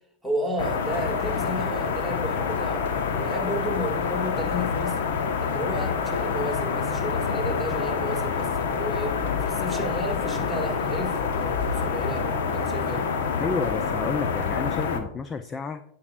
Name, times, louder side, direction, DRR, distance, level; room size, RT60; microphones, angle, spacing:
voice 1, 0.2-5.0 5.4-13.1, equal, 5° left, 2.1 m, -32 dB
sound 1, 0.6-15.0, left 5 dB, 55° left, 1.2 m, -27 dB
voice 2, 13.4-15.8, left 5 dB, 20° left, 0.5 m, -31 dB
16.5 x 6.8 x 2.5 m
figure-of-eight pair, 90°, 0 cm